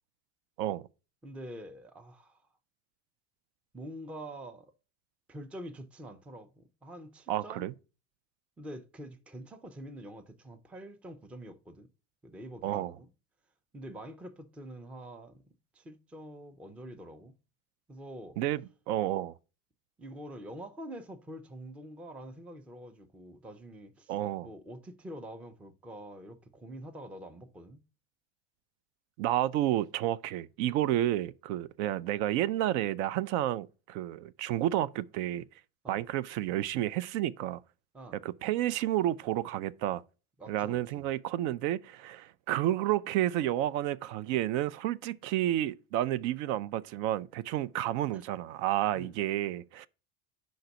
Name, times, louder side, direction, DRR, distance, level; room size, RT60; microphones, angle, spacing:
voice 1, 1.2-2.4 3.7-4.7 5.3-7.7 8.6-11.9 12.2-13.1 13.7-15.4 15.7-17.3 17.9-18.4 20.0-24.1 24.4-27.8 35.8-36.1 37.9-38.2 40.4-41.1 48.1-48.2 48.9-49.1, right 1 dB, 5° right, 0.3 m, -46 dB
voice 2, 7.3-7.7 12.6-12.9 18.4-18.6 18.9-19.3 24.1-24.5 29.2-35.4 35.9-37.6 38.2-40.0 40.5-49.9, right 13 dB, 75° right, 0.5 m, -30 dB
5.2 x 3.9 x 5.7 m
supercardioid pair, 125°, 41 cm